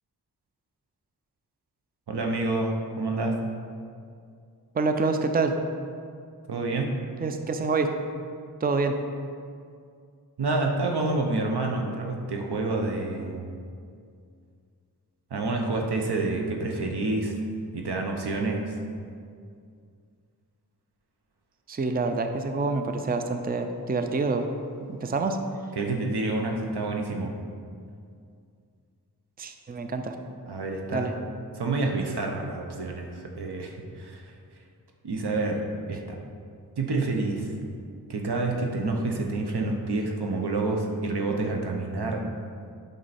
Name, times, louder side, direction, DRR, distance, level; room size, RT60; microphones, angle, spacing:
voice 1, 2.1-3.4 6.5-7.0 10.4-13.5 15.3-17.3 17.7-18.8 25.7-27.3 30.5-31.1 31.6-34.2 35.0-35.6 35.9-36.2 36.8-37.5 38.1-42.3, right 2 dB, 85° right, 2 dB, 0.9 m, -28 dB
voice 2, 4.7-5.6 7.2-7.9 8.6-9.0 21.7-24.5 24.8-25.4 29.4-30.2 30.9-31.1, right 3 dB, 25° right, 6 dB, 0.5 m, -27 dB
7.7 x 5.5 x 4.2 m, 2.3 s
wide cardioid pair, 75°, 38 cm